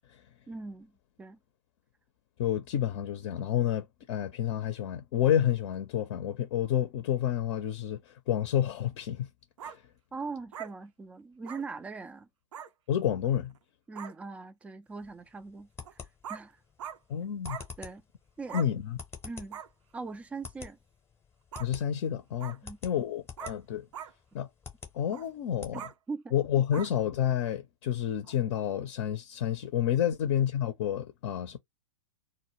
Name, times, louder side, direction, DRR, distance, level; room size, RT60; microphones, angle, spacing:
voice 1, 0.5-0.9 1.2-1.4 10.1-12.3 13.9-15.7 16.3-16.6 17.8-18.0 18.4-18.6 19.2-19.6 19.9-20.8 22.6-22.8 25.7-25.8 26.1-26.3, right 4 dB, 5° right, 0.3 m, -40 dB
voice 2, 2.4-9.3 9.6-9.7 12.9-13.5 17.1-17.6 18.5-19.0 21.6-23.9 24.3-24.5 24.9-25.8 26.3-31.6, left 10 dB, 45° left, 0.6 m, -29 dB
sound 1, 9.6-9.8 10.5-10.7 11.5-11.6 12.5-12.7 13.6-13.7 14.0-14.1 15.8-15.9 16.2-16.4 16.8-17.0 17.5-17.7 18.5-18.7 19.5-19.7 21.5-21.7 22.4-22.6 23.4-23.6 23.9-24.1 25.1-25.3 25.7-25.9 26.7-26.9 28.2-28.4, right 9 dB, 60° right, 0.5 m, -41 dB
sound 2, 14.9-25.7, left 5 dB, 15° left, 0.8 m, -49 dB
2.2 x 2.1 x 3.0 m
figure-of-eight pair, 105°, 18 cm